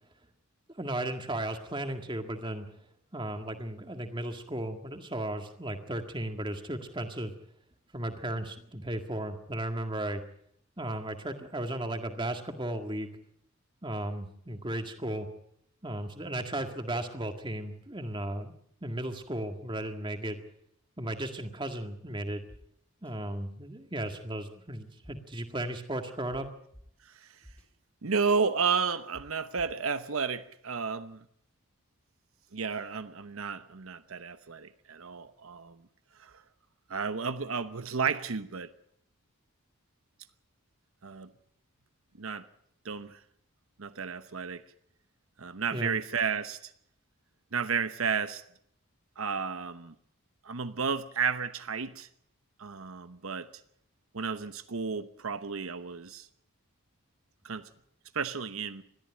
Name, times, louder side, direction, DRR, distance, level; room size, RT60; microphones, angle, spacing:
voice 1, 0.8-2.7 3.1-7.3 7.9-10.2 10.8-13.1 13.8-15.3 15.8-18.5 18.8-20.4 21.0-22.4 23.0-26.5 45.7-45.9, right 1 dB, 20° right, 6 dB, 1.8 m, -35 dB
sound 1, 22.5-22.6 23.0-23.1 25.0-25.4 26.3-26.4 26.7-26.8 27.4-27.7 29.1-29.2 29.6-29.9, equal, 5° left, 2.8 m, -51 dB
voice 2, 28.0-31.2 32.5-35.8 36.2-36.4 36.9-38.7 41.0-41.3 42.2-42.4 42.8-43.2 43.8-44.6 45.4-46.7 47.5-48.4 49.2-49.9 50.4-52.1 52.6-53.5 54.1-56.3 57.4-57.6 58.1-58.8, right 5 dB, 75° right, 11 dB, 0.9 m, -32 dB
21.0 x 14.0 x 9.0 m, 0.69 s
head